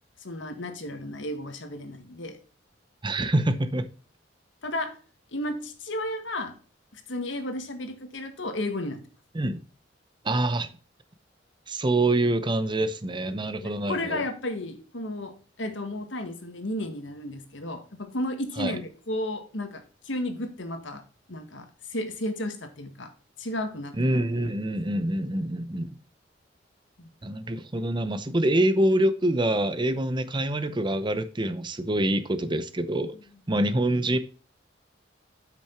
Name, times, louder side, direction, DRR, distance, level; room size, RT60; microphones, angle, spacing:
voice 1, 0.2-2.4 4.6-5.0 5.3-6.6 6.9-9.0 13.3-21.0 21.3-23.1 23.4-24.2 27.0-27.1 28.3-28.4, left 1 dB, 80° left, 1.7 m, -33 dB
voice 2, 3.0-3.9 9.3-9.6 10.2-10.7 11.7-14.2 18.6-18.8 23.9-26.0 27.2-33.1 33.5-34.2, right 1 dB, 25° right, 0.7 m, -25 dB
8.4 x 6.1 x 4.4 m
head